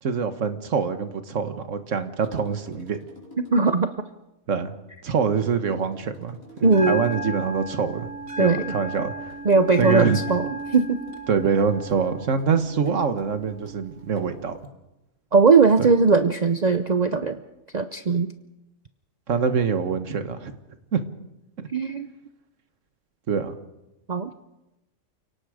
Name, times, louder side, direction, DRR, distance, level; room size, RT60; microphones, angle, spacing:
voice 1, 0.0-3.0 4.5-4.7 5.0-8.1 8.4-9.3 9.8-10.2 11.3-14.6 15.8-15.9 19.3-20.5 20.9-21.0 23.3-23.6, right 6 dB, 70° right, 9 dB, 1.7 m, -25 dB
sound 1, 2.2-4.0 5.5-7.5 9.3-14.4 15.8-16.1 17.1-17.5, left 1 dB, 90° left, 5.4 m, -50 dB
voice 2, 3.5-3.9 6.6-7.0 8.4-8.8 9.4-11.0 15.3-17.4 17.7-18.3 21.7-22.1 24.1-24.3, right 4 dB, 40° right, 9 dB, 0.7 m, -19 dB
Bell, 6.6-14.6, right 1 dB, 85° right, 2.5 m, -35 dB
29.5 x 18.5 x 5.0 m, 0.97 s
omnidirectional pair, 1.4 m